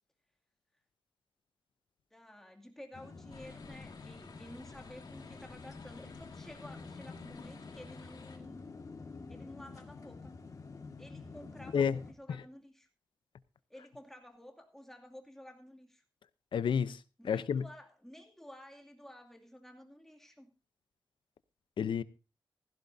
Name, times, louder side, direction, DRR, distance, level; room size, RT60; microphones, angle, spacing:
voice 1, 2.1-8.7 9.3-10.4 11.0-12.9 13.7-16.0 17.2-20.5, left 1 dB, 5° left, 2.4 m, -52 dB
sound 1, 2.9-12.1, left 4 dB, 45° left, 1.8 m, -48 dB
sound 2, 3.3-8.4, left 4 dB, 60° left, 2.8 m, -56 dB
voice 2, 16.5-17.0 17.2-17.6 21.8-22.0, left 7 dB, 85° left, 0.6 m, -30 dB
16.0 x 15.5 x 2.7 m
wide cardioid pair, 115°, 8 cm